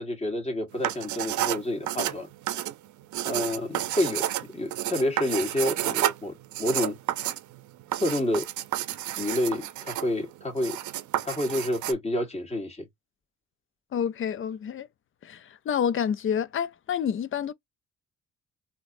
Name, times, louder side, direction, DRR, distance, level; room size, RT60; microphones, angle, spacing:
voice 1, 0.0-2.3 3.2-4.3 4.5-6.3 6.6-7.0 8.0-8.5 9.2-10.8 11.2-12.9, left 1 dB, 20° left, 1.7 m, -28 dB
sound 1, 0.7-11.9, right 13 dB, 70° right, 0.6 m, -31 dB
voice 2, 13.9-14.9 15.2-17.5, left 8 dB, 45° left, 0.5 m, -28 dB
3.8 x 2.8 x 2.5 m
cardioid pair, 90°, 30 cm